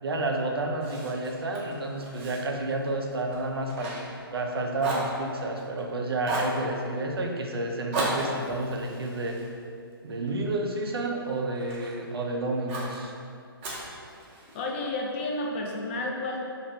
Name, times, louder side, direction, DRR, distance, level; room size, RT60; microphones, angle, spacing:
voice 1, 0.0-3.9 4.3-9.4 10.0-13.1, right 2 dB, 80° right, 2 dB, 0.5 m, -30 dB
Fire, 0.8-4.5 4.8-5.8 6.2-6.6 7.9-10.3 10.8-12.0 12.7-13.0 13.6-14.7, right 1 dB, 30° right, 0.6 m, -36 dB
voice 2, 14.5-16.4, left 2 dB, 30° left, -1 dB, 0.4 m, -31 dB
2.8 x 2.5 x 3.1 m, 2.3 s
hypercardioid pair, 140°, 13 cm